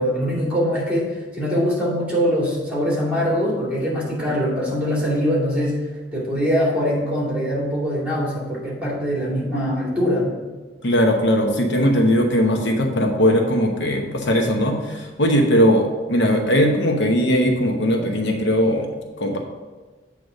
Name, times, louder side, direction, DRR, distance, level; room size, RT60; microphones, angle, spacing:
voice 1, 0.0-5.8 6.1-10.3, equal, 10° right, -5 dB, 2.5 m, -22 dB
voice 2, 10.8-18.9 19.2-19.4, equal, 80° left, 3 dB, 0.9 m, -19 dB
8.0 x 3.4 x 6.4 m, 1.3 s
head